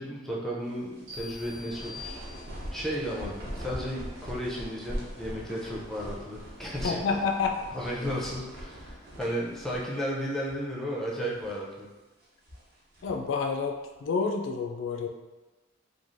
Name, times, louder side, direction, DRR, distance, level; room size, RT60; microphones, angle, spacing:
voice 1, 0.0-2.2 2.7-7.0 7.7-11.9, equal, ahead, -4 dB, 0.4 m, -34 dB
sound 1, 0.7-10.2 10.4-10.6 11.2-11.7 12.2-13.3, equal, 55° right, 0.7 m, -42 dB
sound 2, 1.1-2.9, left 4 dB, 85° right, 1.0 m, -45 dB
voice 2, 6.8-7.6 13.0-15.1, left 5 dB, 70° left, 2 dB, 0.3 m, -29 dB
3.1 x 2.3 x 2.5 m, 1.2 s
head